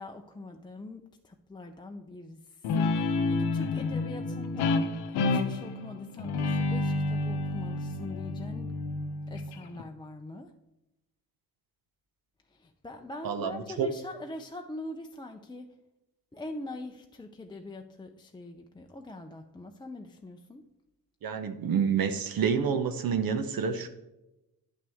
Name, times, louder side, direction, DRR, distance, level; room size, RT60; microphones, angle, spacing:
voice 1, 0.0-4.8 5.1-8.7 9.3-10.5 12.5-15.7 16.3-20.6, left 2 dB, 10° left, 3 dB, 0.5 m, -43 dB
Guitar, 2.6-9.8, left 3 dB, 80° left, 0.8 m, -29 dB
voice 2, 13.2-13.9 21.2-23.9, right 6 dB, 60° right, 9 dB, 0.8 m, -28 dB
9.5 x 5.9 x 3.5 m, 0.95 s
supercardioid pair, 55°, 39 cm